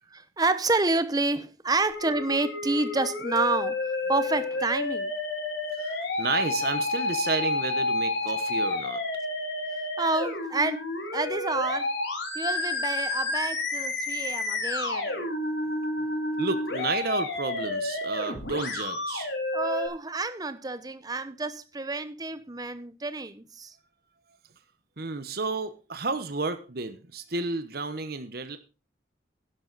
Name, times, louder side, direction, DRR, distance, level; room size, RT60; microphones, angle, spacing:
voice 1, 0.1-3.8 4.1-5.1 10.0-10.9 11.1-11.9 12.3-15.3 19.5-23.7, right 3 dB, 20° right, 0.8 m, -29 dB
Musical instrument, 1.9-19.9, left 2 dB, 80° left, 3.4 m, -30 dB
voice 2, 5.8-9.0 16.4-19.3 25.0-28.6, right 4 dB, 55° right, 1.0 m, -32 dB
11.0 x 11.0 x 4.1 m
head